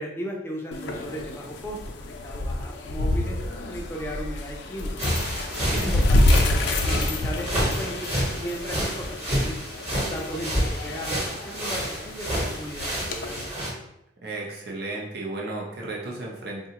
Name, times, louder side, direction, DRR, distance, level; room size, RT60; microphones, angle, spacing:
voice 1, 0.0-5.0 5.6-9.6 10.0-13.5, equal, 15° left, 0 dB, 0.4 m, -36 dB
sound 1, 0.7-13.4, left 1 dB, 75° left, 0.4 m, -28 dB
sound 2, 5.0-13.7, equal, 35° right, 1.1 m, -29 dB
voice 2, 5.6-6.0 14.2-16.7, right 2 dB, 55° right, -2 dB, 0.6 m, -33 dB
3.7 x 2.3 x 2.8 m, 0.81 s
head